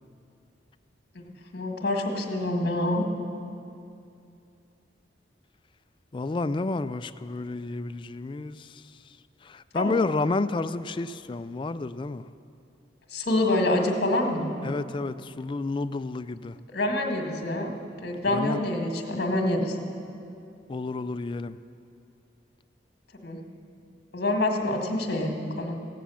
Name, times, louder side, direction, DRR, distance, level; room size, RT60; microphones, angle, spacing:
voice 1, 1.1-3.0 9.7-10.0 13.1-14.5 16.7-17.7 18.0-19.8 23.2-23.4 24.1-25.8, left 1 dB, 55° left, 3 dB, 1.7 m, -26 dB
voice 2, 6.1-8.7 9.5-12.2 14.6-16.6 18.3-18.6 20.7-21.6, left 3 dB, 25° left, 12 dB, 0.3 m, -30 dB
15.5 x 9.3 x 7.1 m, 2.6 s
head